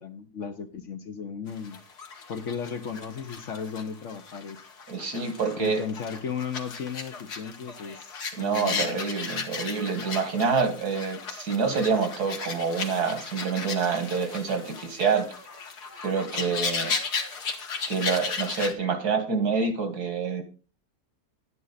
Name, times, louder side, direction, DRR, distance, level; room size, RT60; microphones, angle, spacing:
voice 1, 0.0-1.8 2.3-4.6 5.6-9.1, left 6 dB, 55° left, 9 dB, 1.1 m, -35 dB
sound 1, 1.5-18.7, left 5 dB, 85° left, 2.0 m, -35 dB
voice 2, 4.9-5.8 8.4-15.3 16.0-17.0 17.9-20.4, right 5 dB, 85° right, 8 dB, 2.4 m, -27 dB
11.0 x 9.6 x 4.1 m, 0.34 s
omnidirectional pair, 1.6 m